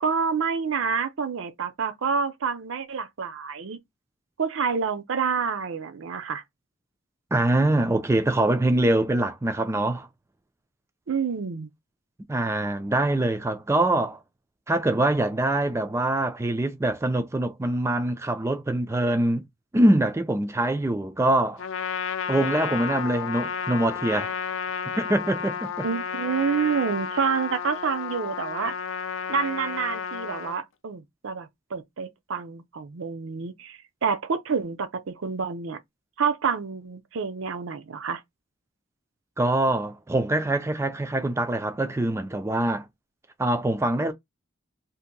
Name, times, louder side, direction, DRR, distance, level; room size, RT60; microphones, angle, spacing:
voice 1, 0.0-3.8 4.4-6.4 11.1-11.7 25.8-28.8 29.3-35.8 36.2-38.2, right 6 dB, 65° right, 0.5 m, -28 dB
voice 2, 7.3-10.1 12.3-14.2 14.7-19.5 19.7-21.6 22.3-24.5 25.0-25.9 39.4-42.9 43.4-44.1, right 1 dB, 15° right, 0.3 m, -24 dB
Trumpet, 21.6-30.6, left 6 dB, 65° left, 0.5 m, -32 dB
2.8 x 2.5 x 3.7 m
head